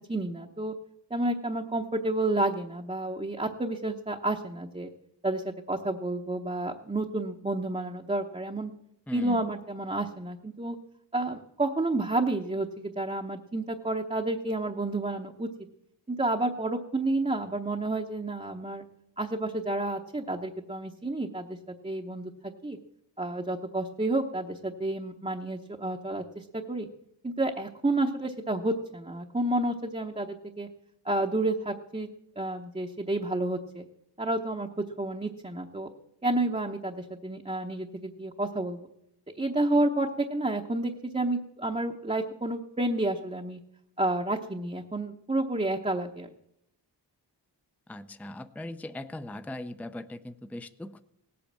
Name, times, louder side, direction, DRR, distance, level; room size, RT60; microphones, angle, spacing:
voice 1, 0.1-0.7 1.1-4.9 5.2-8.7 9.1-10.8 11.1-15.5 16.1-18.8 19.2-21.6 21.8-22.3 22.6-22.8 23.2-26.9 27.2-30.7 31.0-32.1 32.4-33.8 34.2-34.7 35.0-35.9 36.2-38.9 39.3-43.6 44.0-46.3, right 2 dB, 15° right, 1 dB, 0.9 m, -30 dB
voice 2, 9.1-9.5 47.9-51.0, left 1 dB, 5° left, 10 dB, 0.6 m, -39 dB
17.5 x 8.6 x 7.4 m, 0.80 s
wide cardioid pair, 100°, 43 cm